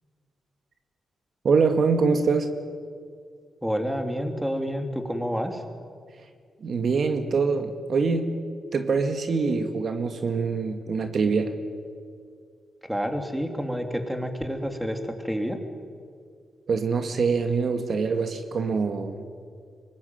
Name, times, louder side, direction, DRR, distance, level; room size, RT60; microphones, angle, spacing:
voice 1, 1.4-2.5 6.6-8.3 8.7-11.5 16.7-19.2, right 4 dB, 60° right, 6 dB, 1.9 m, -24 dB
voice 2, 3.6-5.6 12.9-15.6, equal, 5° right, 5 dB, 3.0 m, -29 dB
23.5 x 20.0 x 9.4 m, 2.2 s
cardioid pair, 85°, 0 cm